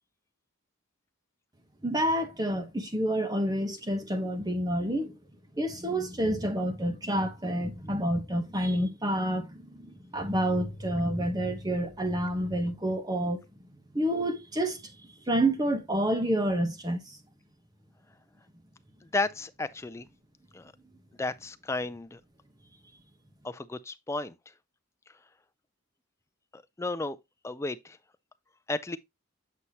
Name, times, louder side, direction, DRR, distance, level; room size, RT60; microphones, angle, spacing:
voice 1, 1.8-5.1 5.6-13.4 13.9-17.2, right 1 dB, 20° right, 1.0 m, -29 dB
voice 2, 19.1-20.1 20.5-20.7 21.2-22.2 23.4-24.3 26.5-27.2 27.4-28.0 28.7-29.0, left 3 dB, 15° left, 0.3 m, -33 dB
8.1 x 5.6 x 2.8 m
head